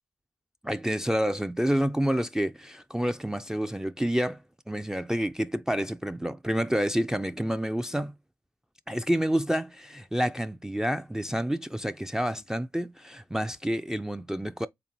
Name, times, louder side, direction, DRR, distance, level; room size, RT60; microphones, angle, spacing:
voice 1, 0.6-4.4 4.7-8.1 8.9-14.7, equal, 5° right, 0.3 m, -28 dB
4.0 x 2.5 x 2.9 m
cardioid pair, 45°, 8 cm